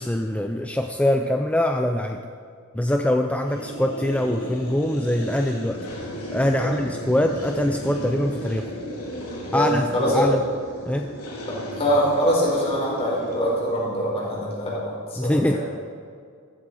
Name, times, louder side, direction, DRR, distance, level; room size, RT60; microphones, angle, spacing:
voice 1, 0.0-2.2 2.7-5.9 6.3-8.7 9.5-10.4 10.8-11.1 15.2-15.6, left 1 dB, 5° left, 4 dB, 0.5 m, -23 dB
sound 1, 3.5-13.9, equal, 85° left, 3.0 m, -35 dB
voice 2, 9.5-10.3 11.5-15.6, equal, 30° left, -4 dB, 4.7 m, -24 dB
15.0 x 14.5 x 4.8 m, 2.2 s
head